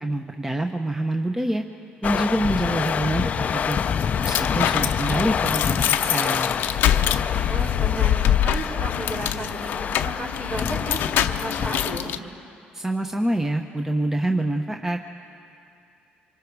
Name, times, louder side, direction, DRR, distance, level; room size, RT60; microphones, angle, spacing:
voice 1, 0.0-1.6 2.0-3.8 4.2-6.5 12.7-15.0, right 1 dB, 10° right, 4 dB, 0.9 m, -26 dB
sound 1, 2.0-12.0, left 7 dB, 45° left, 0.5 m, -27 dB
sound 2, 3.6-12.2, left 10 dB, 80° left, 0.7 m, -25 dB
voice 2, 7.5-12.1, right 2 dB, 55° right, -4 dB, 5.1 m, -34 dB
26.0 x 25.5 x 4.8 m, 2.6 s
cardioid pair, 100°, 3 cm